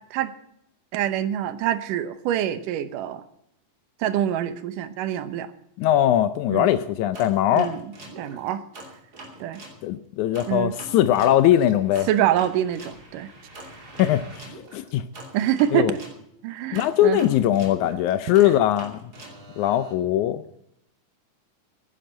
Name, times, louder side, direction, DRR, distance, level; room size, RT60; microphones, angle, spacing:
voice 1, 0.9-3.2 4.0-5.5 6.5-6.7 7.5-7.8 8.2-8.6 9.4-9.6 10.5-10.7 12.1-13.3 15.3-15.9 16.4-17.2, right 11 dB, 80° right, 12 dB, 2.4 m, -25 dB
voice 2, 5.8-7.7 9.8-12.1 14.0-15.0 15.7-15.9 16.7-19.1 19.6-20.4, left 12 dB, 80° left, 13 dB, 1.9 m, -21 dB
sound 1, 7.1-9.8 10.3-16.2 16.7-19.9, right 1 dB, 30° right, 2.9 m, -43 dB
10.5 x 10.5 x 8.6 m, 0.76 s
omnidirectional pair, 3.8 m